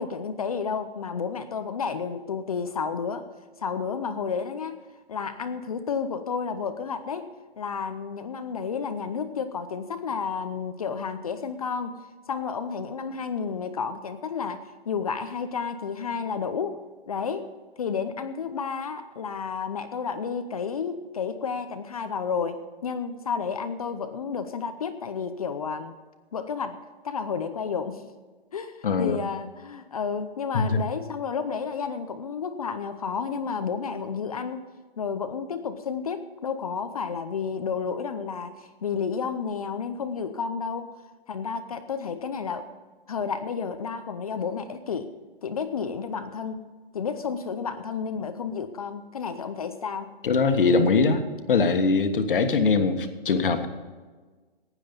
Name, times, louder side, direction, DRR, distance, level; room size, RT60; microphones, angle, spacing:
voice 1, 0.0-3.3 3.6-4.8 5.1-12.0 12.3-16.8 17.1-17.5 17.8-25.9 26.3-28.0 28.5-34.7 35.0-40.9 41.3-42.7 43.1-45.1 45.4-46.6 46.9-50.2, left 6 dB, 35° left, 9 dB, 0.7 m, -31 dB
voice 2, 28.8-29.2 30.5-30.8 50.2-51.2 51.5-53.7, left 4 dB, 60° left, 7 dB, 1.6 m, -22 dB
15.5 x 10.0 x 5.4 m, 1.3 s
hypercardioid pair, 170°, 30 cm